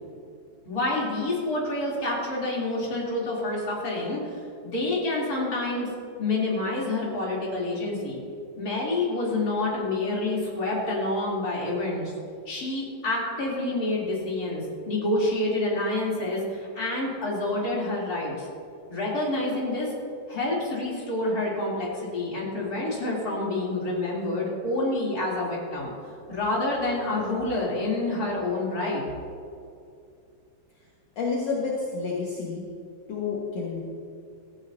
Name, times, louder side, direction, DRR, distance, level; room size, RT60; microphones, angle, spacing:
voice 1, 0.6-4.2 4.6-5.9 6.2-8.2 8.6-12.1 12.5-18.5 18.9-19.9 20.3-25.9 26.3-29.0, left 2 dB, 25° left, -5 dB, 3.1 m, -28 dB
voice 2, 31.2-32.6 33.1-33.8, left 4 dB, 55° left, -5 dB, 1.9 m, -29 dB
16.5 x 15.5 x 2.8 m, 2.5 s
omnidirectional pair, 5.0 m